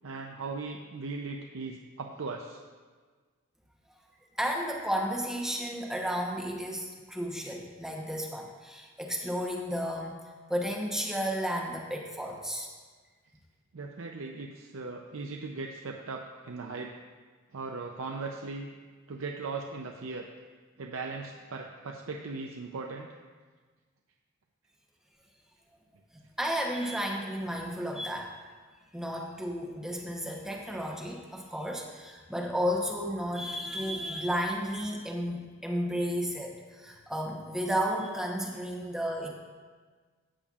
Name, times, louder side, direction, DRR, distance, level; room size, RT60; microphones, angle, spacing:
voice 1, 0.0-2.6 13.7-16.9 17.5-18.7 19.1-20.3 20.8-23.1, right 3 dB, 65° right, 1 dB, 0.6 m, -38 dB
voice 2, 4.4-10.2 10.5-12.7 26.4-28.3 28.9-39.3, equal, ahead, -1 dB, 0.9 m, -33 dB
14.0 x 8.7 x 2.4 m, 1.5 s
head